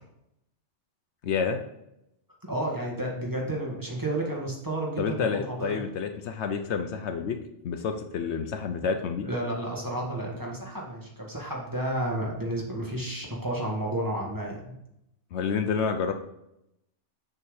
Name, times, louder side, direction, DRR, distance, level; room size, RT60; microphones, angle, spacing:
voice 1, 1.2-1.6 5.0-7.4 7.6-9.3 15.3-16.1, left 6 dB, 70° left, 7 dB, 0.9 m, -29 dB
voice 2, 2.4-5.8 9.2-14.7, right 1 dB, 15° right, -2 dB, 1.5 m, -31 dB
6.8 x 3.7 x 6.4 m, 0.82 s
omnidirectional pair, 1.2 m